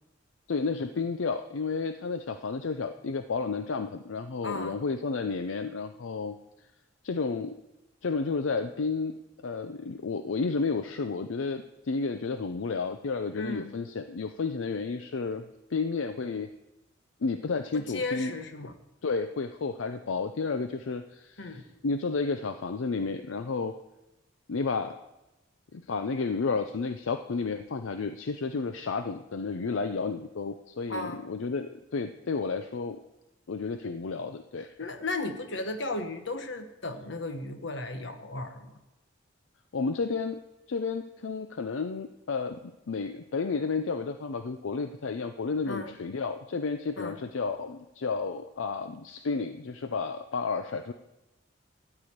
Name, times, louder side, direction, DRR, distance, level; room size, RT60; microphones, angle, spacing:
voice 1, 0.5-6.4 7.0-7.6 8.0-9.1 9.4-15.5 15.7-16.5 17.2-18.3 19.0-23.7 24.5-25.0 25.7-33.0 33.5-34.7 39.7-40.4 40.7-50.9, left 4 dB, 80° left, 8 dB, 0.5 m, -31 dB
voice 2, 4.4-4.8 13.3-13.7 17.7-18.7 21.4-21.6 30.9-31.2 34.8-38.8 45.6-45.9 47.0-47.2, left 2 dB, 65° left, 7 dB, 1.1 m, -35 dB
13.0 x 4.9 x 8.6 m, 0.97 s
head